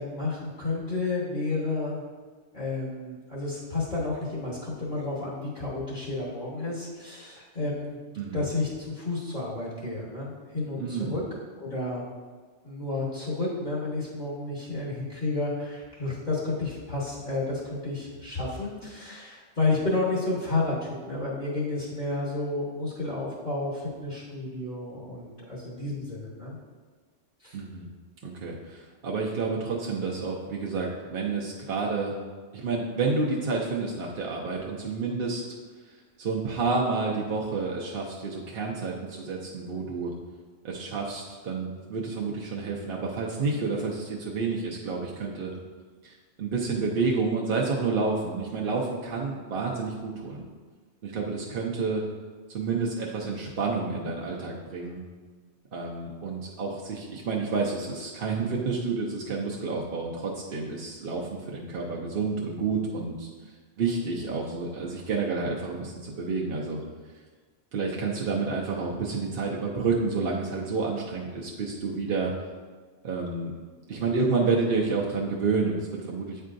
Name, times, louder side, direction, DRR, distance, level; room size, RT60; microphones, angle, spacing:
voice 1, 0.0-2.0 2.5-8.0 8.3-11.2 11.6-12.0 12.6-26.6 27.4-27.6, left 2 dB, 45° left, -6 dB, 1.2 m, -31 dB
voice 2, 10.8-11.2 27.5-27.9 28.2-32.1 32.5-35.4 36.2-40.1 40.6-45.5 46.0-50.4 51.0-52.0 52.5-55.0 55.7-66.8 67.7-72.3 73.0-73.5 73.9-76.5, right 4 dB, 60° right, -3 dB, 0.8 m, -29 dB
8.2 x 4.5 x 2.5 m, 1.4 s
omnidirectional pair, 1.2 m